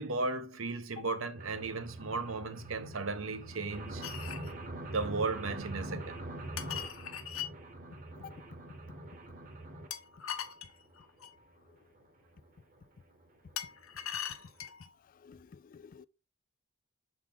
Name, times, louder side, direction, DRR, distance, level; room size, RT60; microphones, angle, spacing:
voice 1, 0.0-4.1 4.9-6.2, right 3 dB, 75° right, 1.0 m, -35 dB
sound 1, 1.3-9.9 10.5-10.6 10.8-10.9 11.2-11.3 11.6-11.7 12.0-12.1 12.8-12.9 13.2-13.3 13.5-13.6 13.9-14.0 14.3-14.4, right 1 dB, 45° right, 1.1 m, -43 dB
sound 2, 4.0-4.5 6.6-7.5 9.9-11.4 13.6-14.9, left 9 dB, 85° left, 0.9 m, -40 dB
voice 2, 6.6-7.1 8.2-8.4 15.2-16.1, left 7 dB, 40° left, 0.3 m, -50 dB
7.2 x 4.1 x 3.9 m
head